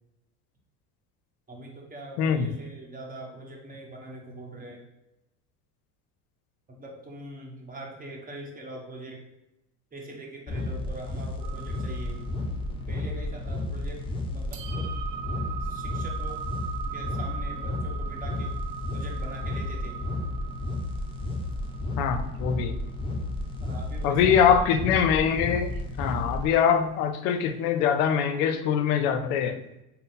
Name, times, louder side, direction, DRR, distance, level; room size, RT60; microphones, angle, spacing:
voice 1, 1.5-4.8 6.7-9.2 9.9-12.2 12.9-14.1 14.3-14.5 14.8-14.9 15.6-16.4 16.8-18.6 18.9-20.0 23.6-24.6, right 1 dB, 20° right, 0 dB, 0.9 m, -42 dB
voice 2, 2.2-2.5 22.0-22.8 24.0-29.6, left 7 dB, 85° left, 10 dB, 0.5 m, -23 dB
sound 1, 10.5-26.5, left 2 dB, 10° left, 0.5 m, -32 dB
sound 2, 11.4-27.8, right 9 dB, 55° right, 0.5 m, -42 dB
3.8 x 2.0 x 4.0 m, 0.91 s
hypercardioid pair, 80°, 44 cm